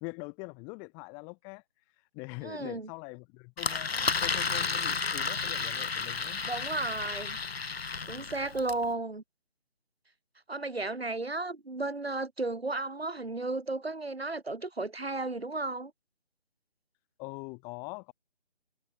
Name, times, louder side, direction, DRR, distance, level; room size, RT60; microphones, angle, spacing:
voice 1, 0.0-1.6 2.0-3.9 4.2-6.4 17.2-18.1, left 35 dB, 10° left, 1.2 m, -43 dB
voice 2, 2.4-2.9 6.5-7.4 8.1-9.2 10.5-15.9, right 2 dB, 75° right, 6.7 m, -34 dB
Engine, 3.6-8.8, left 5 dB, 80° left, 0.9 m, -32 dB
figure-of-eight pair, 155°, 31 cm